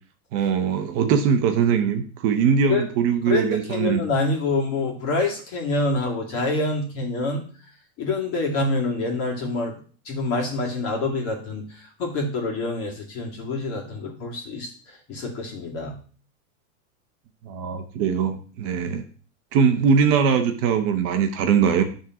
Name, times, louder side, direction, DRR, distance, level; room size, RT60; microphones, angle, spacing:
voice 1, 0.3-4.0 17.4-19.0 19.5-21.8, right 6 dB, 30° right, 6 dB, 0.8 m, -21 dB
voice 2, 3.3-7.4 8.0-9.8 10.0-16.0, left 2 dB, 35° left, 0 dB, 2.3 m, -26 dB
10.5 x 3.8 x 6.0 m, 0.41 s
supercardioid pair, 155°, 43 cm